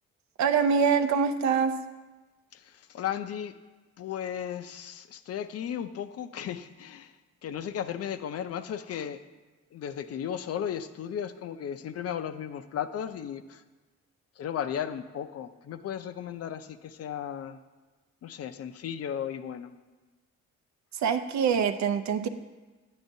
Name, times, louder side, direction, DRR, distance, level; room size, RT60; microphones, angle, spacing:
voice 1, 0.4-1.8 20.9-22.3, right 6 dB, 65° right, 8 dB, 0.6 m, -24 dB
voice 2, 2.5-3.5 4.0-7.1 7.4-9.2 9.7-13.6 14.4-17.6 18.2-19.7, left 9 dB, 55° left, 11 dB, 0.5 m, -35 dB
8.9 x 8.6 x 2.7 m, 1.2 s
cardioid pair, 90°, 30 cm